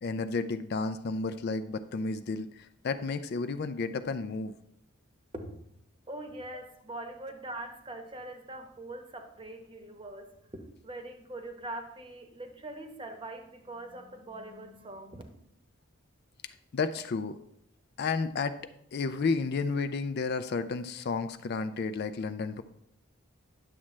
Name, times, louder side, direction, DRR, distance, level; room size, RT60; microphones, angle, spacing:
voice 1, 0.0-4.5 16.7-17.4 18.0-18.6 18.9-22.6, left 4 dB, 50° left, 11 dB, 0.4 m, -32 dB
voice 2, 6.1-15.2, right 1 dB, 25° right, 5 dB, 0.9 m, -42 dB
9.9 x 7.2 x 3.2 m, 0.74 s
head